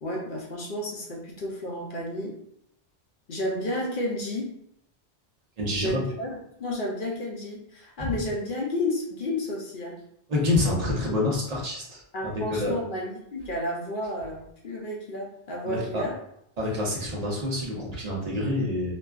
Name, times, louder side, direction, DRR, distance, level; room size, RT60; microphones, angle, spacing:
voice 1, 0.0-2.4 3.3-4.5 5.7-10.0 12.1-16.2, left 1 dB, 60° left, -2 dB, 0.7 m, -31 dB
voice 2, 5.6-6.0 8.0-8.2 10.3-12.7 15.6-16.1 16.6-18.9, left 2 dB, 40° right, -3 dB, 0.8 m, -27 dB
2.5 x 2.3 x 2.3 m, 0.74 s
omnidirectional pair, 1.1 m